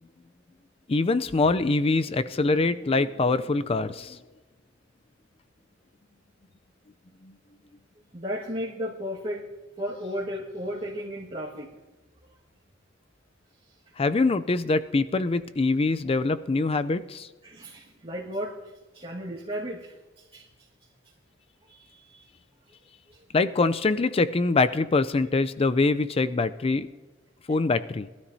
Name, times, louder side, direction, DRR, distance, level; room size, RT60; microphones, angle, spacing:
voice 1, 0.9-4.2 7.2-7.3 14.0-17.3 23.3-26.9 27.5-28.1, left 3 dB, 30° left, 13 dB, 0.4 m, -24 dB
voice 2, 8.1-9.4 9.8-11.7 12.3-12.4 17.4-18.5 18.9-20.5 21.7-22.2 23.1-23.2, equal, 30° right, -6 dB, 1.7 m, -34 dB
22.0 x 12.5 x 2.7 m, 1.2 s
head